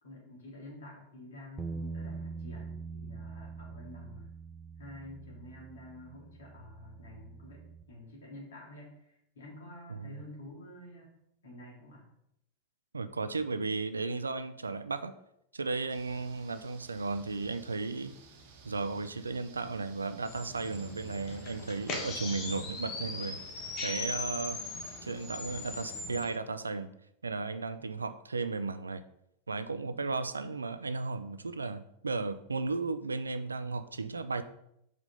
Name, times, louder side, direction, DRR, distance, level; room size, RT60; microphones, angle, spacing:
voice 1, 0.0-4.3 4.8-11.1 11.4-12.0, left 1 dB, 65° left, -2 dB, 2.5 m, -49 dB
sound 1, 1.6-7.8, right 4 dB, 15° right, 0.4 m, -43 dB
voice 2, 9.9-10.2 12.9-15.1 15.5-18.2 18.6-23.4 23.8-24.6 25.0-26.9 27.2-29.0 29.5-34.4, right 3 dB, 75° right, 12 dB, 0.4 m, -35 dB
sound 2, 15.9-26.0, right 4 dB, 50° right, 1.0 m, -55 dB
sound 3, 20.3-26.2, left 3 dB, 35° left, 1.4 m, -39 dB
4.9 x 4.1 x 5.3 m, 0.77 s
figure-of-eight pair, 90°, 0 cm